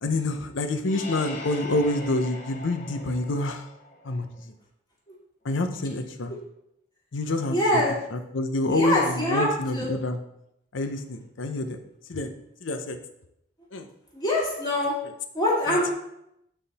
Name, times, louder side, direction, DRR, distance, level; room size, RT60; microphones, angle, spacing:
voice 1, 0.0-3.7 4.0-4.5 5.4-6.3 7.1-7.8 8.1-10.2 10.7-11.8 12.1-12.3 12.6-13.0 13.7-13.9 15.7-15.8, left 2 dB, 80° left, 7 dB, 0.7 m, -27 dB
sound 1, 0.8-4.4, left 2 dB, 40° left, 1.0 m, -40 dB
voice 2, 7.5-7.9 8.7-9.5 9.7-9.9 14.1-14.9 15.3-15.9, left 1 dB, 20° left, -6 dB, 2.0 m, -24 dB
9.0 x 3.7 x 4.1 m, 0.80 s
head